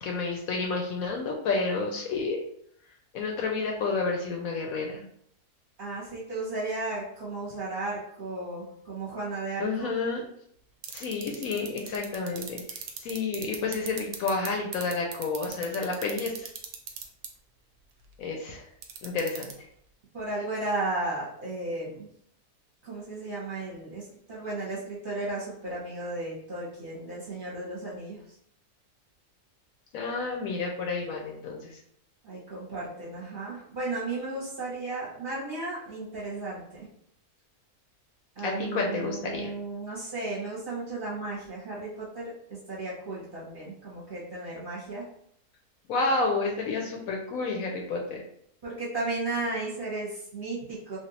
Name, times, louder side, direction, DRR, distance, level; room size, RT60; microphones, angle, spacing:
voice 1, 0.0-2.4 3.1-5.0 9.6-10.2 10.9-16.5 18.2-18.6 19.0-19.5 29.9-31.8 38.4-39.5 45.9-48.2, left 3 dB, 70° left, 1 dB, 0.9 m, -30 dB
voice 2, 5.8-9.9 20.1-22.1 22.8-24.0 24.3-28.2 32.2-36.9 38.4-42.3 42.7-45.0 48.6-51.0, right 2 dB, 40° right, -7 dB, 0.9 m, -34 dB
sound 1, 10.8-14.5 14.7-17.3 18.8-19.5, right 10 dB, 75° right, 1.1 m, -36 dB
3.2 x 2.5 x 2.8 m, 0.69 s
omnidirectional pair, 1.7 m